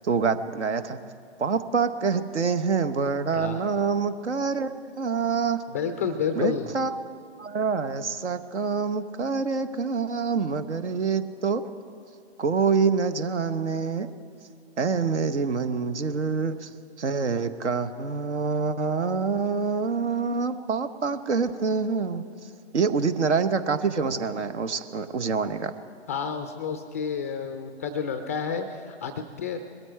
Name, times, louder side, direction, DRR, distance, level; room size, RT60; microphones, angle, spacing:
voice 1, 0.0-1.0 1.4-5.6 6.3-6.9 7.4-11.6 12.4-14.1 14.8-16.7 17.0-22.2 22.7-25.7, right 5 dB, 80° right, 12 dB, 1.0 m, -26 dB
voice 2, 5.7-6.7 26.1-29.6, left 6 dB, 15° left, 7 dB, 0.3 m, -30 dB
21.0 x 13.5 x 4.5 m, 2.3 s
figure-of-eight pair, 125°, 34 cm